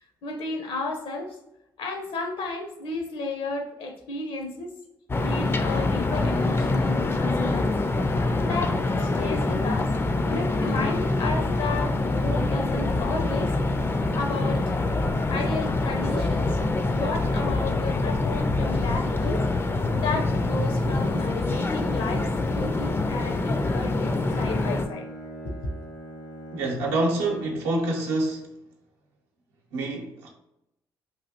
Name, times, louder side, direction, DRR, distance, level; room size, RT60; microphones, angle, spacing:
voice 1, 0.2-1.4 1.8-4.7 5.2-7.7 8.4-9.9 10.2-13.5 14.1-14.7 15.0-16.6 16.9-19.5 19.8-25.1 25.6-25.7, left 3 dB, 65° left, 0.7 m, -33 dB
sound 1, 5.1-24.8, left 2 dB, 25° left, 0.3 m, -25 dB
Bowed string instrument, 24.0-27.9, equal, 85° left, 1.5 m, -41 dB
voice 2, 26.5-28.5 29.7-30.3, right 2 dB, 90° right, 0.6 m, -26 dB
3.1 x 2.5 x 2.7 m
hypercardioid pair, 50°, 10 cm